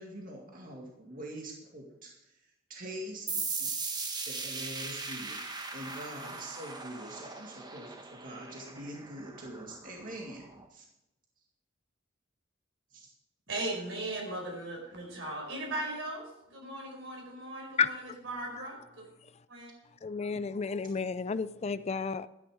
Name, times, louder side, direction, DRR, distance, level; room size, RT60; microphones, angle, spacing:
voice 1, 0.0-2.4 2.7-3.7 4.3-10.4 10.7-10.9 12.9-13.1 20.3-20.4, right 1 dB, 45° right, 0 dB, 2.1 m, -44 dB
sound 1, 3.3-10.7, right 4 dB, 20° right, 1.3 m, -39 dB
voice 2, 13.5-19.0 19.5-19.7, right 2 dB, 70° right, 1 dB, 5.0 m, -38 dB
voice 3, 20.0-22.3, left 5 dB, 35° left, 14 dB, 0.4 m, -31 dB
13.0 x 10.0 x 4.9 m, 0.89 s
head